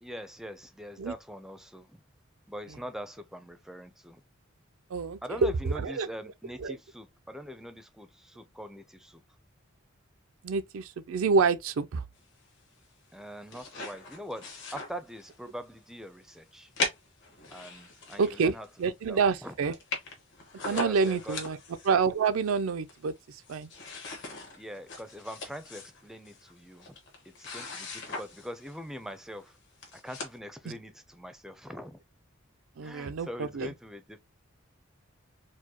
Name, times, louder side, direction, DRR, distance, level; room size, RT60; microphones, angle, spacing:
voice 1, 0.0-2.0 2.5-4.2 5.2-9.2 13.1-16.7 17.5-18.7 19.1-19.6 20.6-21.4 24.6-27.0 27.2-29.6 29.9-32.0 32.8-34.2, equal, ahead, 0.4 m, -42 dB
voice 2, 10.4-12.0 18.2-18.5 18.8-19.7 20.7-21.6 21.8-23.1 23.5-23.7 32.8-33.7, right 5 dB, 85° right, 0.4 m, -27 dB
sound 1, 13.2-15.5 15.9-16.0 16.8-18.8 19.2-19.3 19.5-19.6 19.7-21.9 22.5-23.2 23.4-28.8 29.5-29.6 29.8-30.4, left 3 dB, 65° left, 1.4 m, -39 dB
4.5 x 2.1 x 2.9 m
head